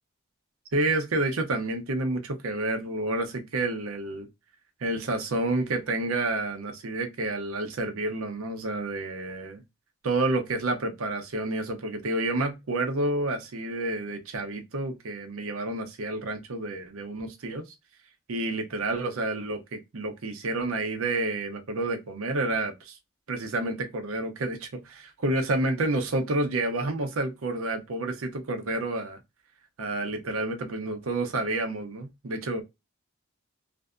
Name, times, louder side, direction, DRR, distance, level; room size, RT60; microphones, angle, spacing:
voice 1, 0.7-4.3 4.8-9.6 10.0-17.7 18.3-23.0 23.3-29.2 29.8-32.6, right 2 dB, 85° right, 0.7 m, -29 dB
2.6 x 2.4 x 2.2 m
head